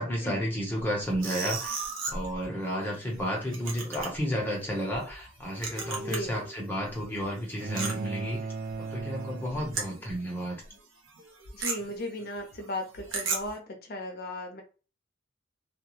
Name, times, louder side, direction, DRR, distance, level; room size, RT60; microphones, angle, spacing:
voice 1, 0.0-8.4 8.8-10.6, equal, 10° left, -2 dB, 0.9 m, -32 dB
sound 1, 0.8-6.4 6.7-10.4 10.7-10.8 11.1-13.6, right 4 dB, 70° right, 0.8 m, -37 dB
sound 2, 5.7-7.4 7.7-7.8, right 1 dB, 30° right, 1.1 m, -46 dB
voice 2, 6.0-6.4 11.5-14.6, left 1 dB, 50° left, 3 dB, 0.7 m, -36 dB
sound 3, 7.6-10.1, right 4 dB, 45° right, 0.3 m, -37 dB
2.4 x 2.3 x 3.0 m, 0.34 s
head